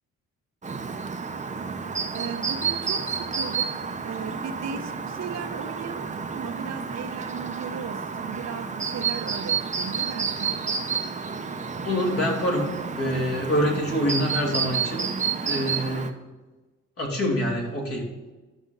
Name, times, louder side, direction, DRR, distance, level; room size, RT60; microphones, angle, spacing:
Chirp tweet, 0.6-16.1, right 5 dB, 25° right, 0.9 m, -30 dB
voice 1, 2.1-10.6, right 7 dB, 60° right, 6 dB, 1.0 m, -36 dB
voice 2, 11.8-15.1 15.4-16.1 17.0-18.1, equal, 50° left, -1 dB, 2.9 m, -26 dB
11.5 x 6.3 x 4.0 m, 1.2 s
cardioid pair, 90°, 30 cm